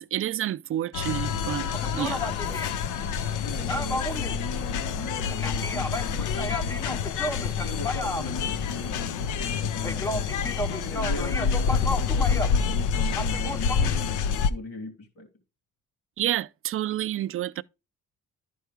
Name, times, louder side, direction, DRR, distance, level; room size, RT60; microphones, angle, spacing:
voice 1, 0.0-2.3 16.2-17.6, right 12 dB, 45° right, 0.4 m, -29 dB
sound 1, 0.9-14.5, left 6 dB, 80° left, 0.7 m, -28 dB
sound 2, 1.7-12.7 13.0-13.9, left 1 dB, 10° left, 0.4 m, -34 dB
voice 2, 3.4-7.0 7.4-10.3 10.7-15.3, left 2 dB, 55° left, 2.9 m, -39 dB
11.5 x 4.7 x 3.3 m
cardioid pair, 90°, 30 cm